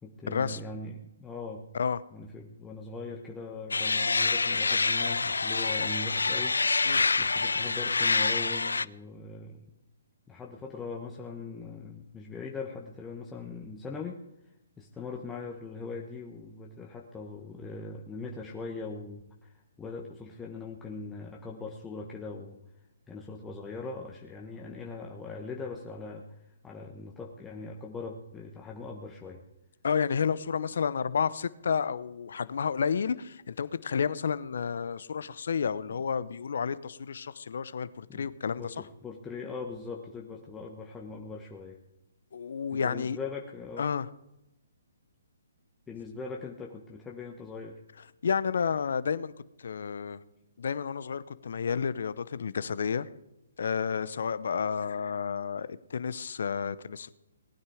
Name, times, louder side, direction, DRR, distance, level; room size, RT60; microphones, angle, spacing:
voice 1, 0.0-1.7 2.1-6.5 7.2-9.6 10.3-14.2 14.8-22.6 23.1-29.4 38.1-38.3 38.6-41.8 42.7-43.9 45.9-47.8, left 4 dB, 10° left, -1 dB, 1.2 m, -41 dB
sound 1, 3.7-8.9, left 4 dB, 90° left, 0.4 m, -26 dB
voice 2, 29.8-38.7 42.3-43.2 43.8-44.1 48.2-49.3 49.6-50.2 50.6-53.1 53.6-57.2, left 6 dB, 65° left, 16 dB, 0.8 m, -31 dB
18.5 x 9.6 x 5.0 m, 0.90 s
hypercardioid pair, 145°, 0 cm